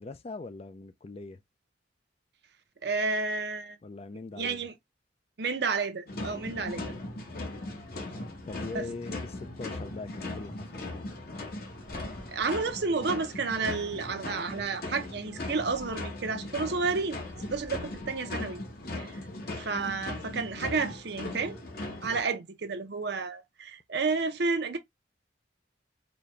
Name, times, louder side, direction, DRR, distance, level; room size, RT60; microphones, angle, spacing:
voice 1, 0.0-1.4 3.8-4.7 7.9-11.1, left 3 dB, 35° left, 0.4 m, -42 dB
voice 2, 2.8-3.8 4.4-4.7 5.4-6.8 8.7-8.9 12.3-17.2 17.5-18.6 19.0-19.1 19.5-21.6 22.0-24.8, right 4 dB, 60° right, 0.7 m, -31 dB
sound 1, 6.1-22.2, left 2 dB, 55° left, 1.0 m, -39 dB
4.0 x 2.3 x 3.1 m
head